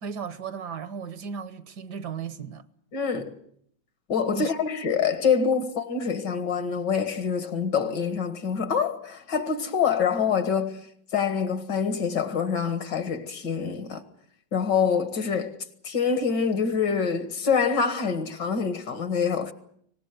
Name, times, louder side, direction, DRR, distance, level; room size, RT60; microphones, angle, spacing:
voice 1, 0.0-2.7 4.3-4.5, right 6 dB, 65° right, 1.7 m, -35 dB
voice 2, 2.9-3.4 4.1-10.8 11.1-14.0 14.5-15.6 15.8-19.5, left 6 dB, 70° left, 2.4 m, -26 dB
24.0 x 19.0 x 8.1 m
omnidirectional pair, 2.0 m